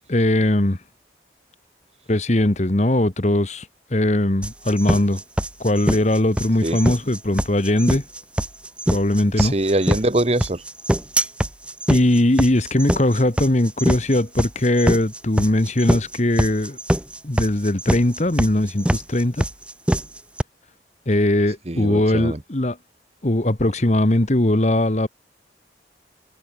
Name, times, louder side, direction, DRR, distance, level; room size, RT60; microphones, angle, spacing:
voice 1, 0.1-0.8 2.1-5.2 5.6-8.0 8.9-9.5 11.9-16.8 17.2-19.4 21.1-22.8 23.2-25.1, left 1 dB, 40° left, 1.3 m, -20 dB
sound 1, 4.4-20.4, equal, 5° right, 1.3 m, -23 dB
voice 2, 9.4-10.6 21.7-22.4, right 1 dB, 35° right, 1.3 m, -22 dB
head